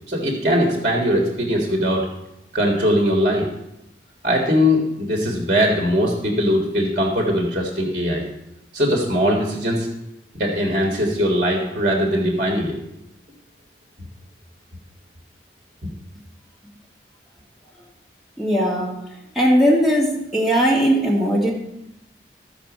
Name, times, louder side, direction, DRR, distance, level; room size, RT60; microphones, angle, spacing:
voice 1, 0.1-2.1 2.5-3.5 4.2-8.2 8.7-9.9 10.3-12.7, equal, 45° right, -1 dB, 1.7 m, -20 dB
voice 2, 18.4-18.9 19.4-21.5, equal, ahead, -5 dB, 2.2 m, -18 dB
14.5 x 5.1 x 6.1 m, 0.86 s
head